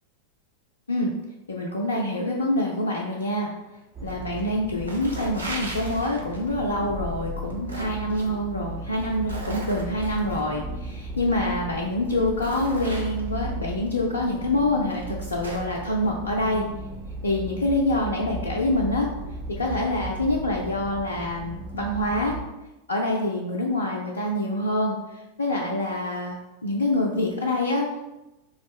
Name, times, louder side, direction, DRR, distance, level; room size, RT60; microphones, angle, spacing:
voice 1, 1.5-3.5 4.0-16.6 17.2-19.1 19.6-22.3 22.9-27.9, left 1 dB, 75° left, -1 dB, 0.3 m, -26 dB
sound 1, 3.9-22.4, right 2 dB, 15° right, 0.3 m, -36 dB
sound 2, 4.1-4.5 4.8-6.5 7.3-8.3 8.9-10.4 11.4-11.5 12.0-13.4 14.3-14.4 14.9-15.8, right 1 dB, 80° right, 0.5 m, -38 dB
3.5 x 2.0 x 3.3 m, 0.99 s
figure-of-eight pair, 90°, 0 cm